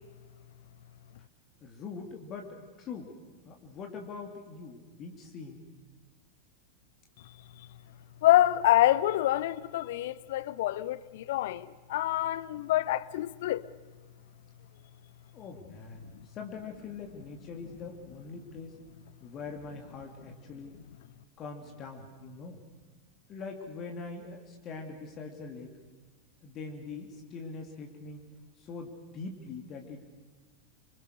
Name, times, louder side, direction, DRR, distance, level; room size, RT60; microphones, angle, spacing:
voice 1, 1.6-3.1 3.4-5.6 15.3-18.8 19.2-20.8 21.4-22.6 23.3-25.7 26.4-28.2 28.6-30.0, left 4 dB, 30° left, 2.9 m, -43 dB
voice 2, 8.2-13.6, left 14 dB, 55° left, 0.8 m, -26 dB
26.5 x 26.5 x 6.6 m
figure-of-eight pair, 90°, 0 cm